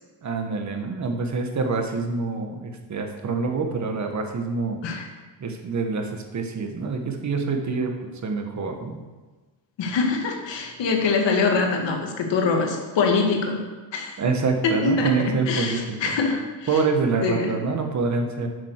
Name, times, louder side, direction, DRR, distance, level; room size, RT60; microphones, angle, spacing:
voice 1, 0.2-4.8 5.4-7.9 8.2-9.0 14.2-16.1 16.7-18.5, right 4 dB, 40° right, 4 dB, 1.6 m, -26 dB
voice 2, 9.8-13.6 13.9-14.2 14.6-16.8 17.2-17.6, left 4 dB, 70° left, 2 dB, 2.2 m, -24 dB
10.5 x 7.9 x 6.6 m, 1.3 s
cardioid pair, 160°, 45 cm